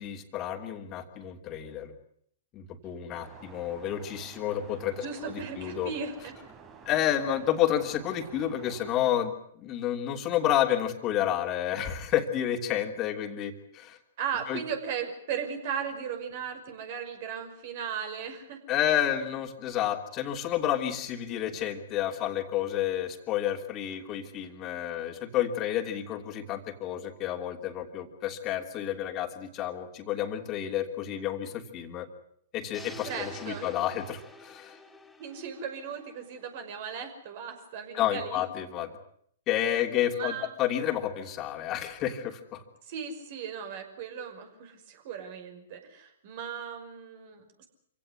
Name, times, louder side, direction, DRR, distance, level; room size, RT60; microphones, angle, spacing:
voice 1, 0.0-1.9 2.5-5.9 6.8-14.0 14.5-14.6 18.7-32.1 32.5-34.8 37.9-39.0 39.5-42.6, left 11 dB, 30° left, 5 dB, 2.9 m, -30 dB
sound 1, 3.1-8.9, right 5 dB, 25° right, 3.7 m, -51 dB
voice 2, 5.0-6.3 14.2-18.8 33.1-33.8 35.2-38.4 40.1-40.5 42.8-47.7, right 7 dB, 50° right, 6 dB, 5.7 m, -37 dB
sound 2, 32.7-36.8, left 2 dB, 5° left, 2.1 m, -48 dB
26.5 x 17.0 x 9.5 m, 0.68 s
figure-of-eight pair, 115°, 0 cm